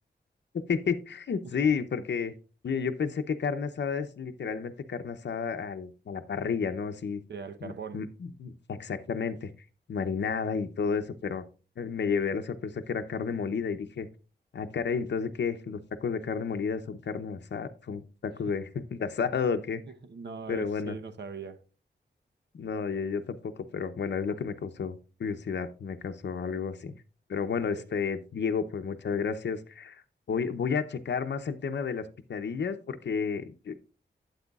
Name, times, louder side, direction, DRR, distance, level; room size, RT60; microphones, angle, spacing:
voice 1, 0.5-2.3 2.6-7.2 7.6-8.1 8.4-9.5 9.9-11.4 11.8-14.1 14.5-19.8 20.5-21.0 22.5-26.9 27.3-30.0 30.3-33.7, left 6 dB, 70° left, 0.7 m, -31 dB
voice 2, 7.3-8.0 20.1-21.6 27.8-27.9, right 5 dB, 70° right, 0.9 m, -40 dB
12.0 x 8.3 x 2.4 m
wide cardioid pair, 150°, 19 cm